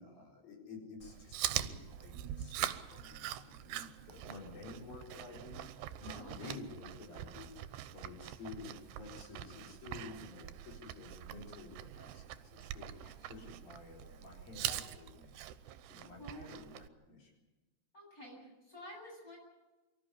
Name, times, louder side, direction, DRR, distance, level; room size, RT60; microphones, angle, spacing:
voice 1, 0.0-7.6 7.9-17.3, left 4 dB, 60° left, -1 dB, 5.9 m, -51 dB
Chewing mastication, 1.0-16.9, right 12 dB, 85° right, 2.9 m, -43 dB
voice 2, 6.0-6.6 12.9-13.5 16.2-16.5 17.9-19.4, equal, 20° left, -1 dB, 8.4 m, -51 dB
24.5 x 14.0 x 9.6 m, 1.2 s
omnidirectional pair, 4.6 m